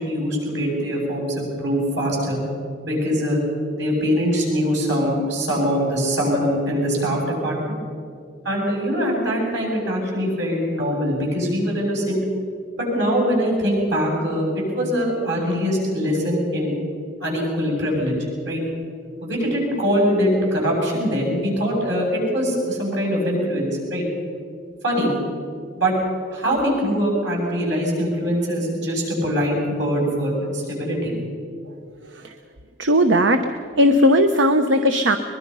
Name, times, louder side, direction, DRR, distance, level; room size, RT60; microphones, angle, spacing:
voice 1, 0.0-2.4 2.8-3.4 3.7-7.8 8.4-12.2 12.8-16.7 17.2-18.1 18.4-18.6 19.2-24.0 24.8-25.1 25.8-25.9 26.3-31.1, equal, 70° right, -1 dB, 7.4 m, -22 dB
voice 2, 32.8-33.5 33.8-35.2, equal, 85° right, 7 dB, 0.9 m, -17 dB
23.0 x 21.5 x 5.6 m, 2.3 s
head